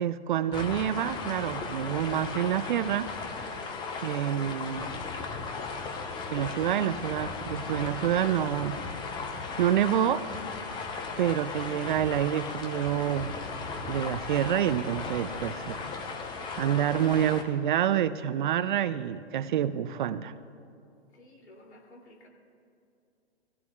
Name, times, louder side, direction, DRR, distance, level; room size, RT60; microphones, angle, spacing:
voice 1, 0.0-3.1 4.0-5.0 6.3-8.8 9.6-10.2 11.2-13.3 13.9-15.8 16.6-20.3, right 10 dB, 50° right, 14 dB, 0.5 m, -27 dB
sound 1, 0.5-17.4, left 4 dB, 15° left, 0.6 m, -36 dB
voice 2, 21.1-22.3, left 1 dB, 80° left, 0 dB, 2.9 m, -53 dB
19.5 x 15.5 x 2.4 m, 2.6 s
hypercardioid pair, 130°, 33 cm